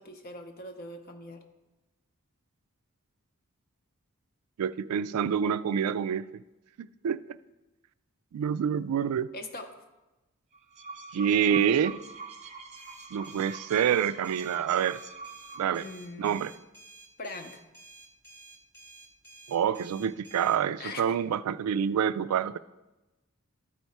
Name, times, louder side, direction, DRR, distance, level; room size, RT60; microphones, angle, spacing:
voice 1, 0.0-1.4 9.3-9.7 15.6-16.4 17.2-17.6 20.8-21.1, left 2 dB, 40° left, 5 dB, 0.7 m, -41 dB
voice 2, 4.6-6.3 6.8-7.4 8.3-9.3 11.1-12.0 13.1-15.0 15.6-15.9 16.2-16.5 19.5-22.6, right 8 dB, 90° right, 16 dB, 0.3 m, -27 dB
sound 1, 10.5-15.9, right 4 dB, 30° right, 0.7 m, -44 dB
sound 2, 12.8-20.6, right 3 dB, 10° left, 0.7 m, -52 dB
13.0 x 4.7 x 4.2 m, 1.1 s
head